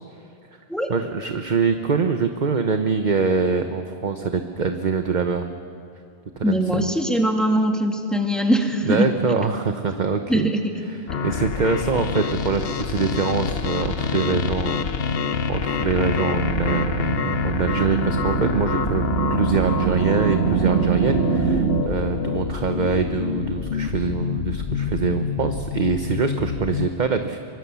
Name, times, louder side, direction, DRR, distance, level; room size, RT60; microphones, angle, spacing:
voice 1, 0.9-5.5 6.4-6.9 8.8-10.5 11.2-14.9 15.5-27.4, right 5 dB, 45° right, 6 dB, 1.0 m, -24 dB
voice 2, 6.4-9.1 10.3-10.9, equal, ahead, 2 dB, 2.1 m, -21 dB
sound 1, 11.1-26.9, left 6 dB, 65° left, 1.1 m, -27 dB
sound 2, 15.2-21.8, right 8 dB, 85° right, 1.0 m, -25 dB
24.0 x 24.0 x 7.0 m, 2.5 s
omnidirectional pair, 1.1 m